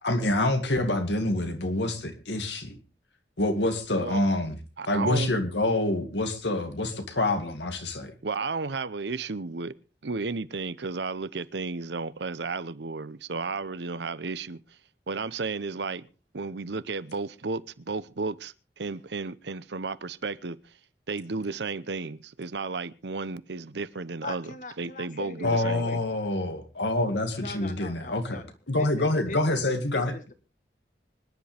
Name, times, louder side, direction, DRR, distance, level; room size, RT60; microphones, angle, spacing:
voice 1, 0.0-2.8 3.4-4.6 4.9-8.1 25.4-28.4 28.7-30.1, left 2 dB, 80° left, 2.2 m, -26 dB
voice 2, 4.8-5.3 8.2-9.7 10.0-14.6 15.1-16.1 16.3-20.6 21.1-24.5 24.8-26.0 29.1-29.2, right 4 dB, 75° right, 0.8 m, -33 dB
voice 3, 24.2-26.0 27.4-29.6 29.9-30.3, left 2 dB, 45° left, 1.5 m, -41 dB
25.0 x 10.5 x 3.4 m
head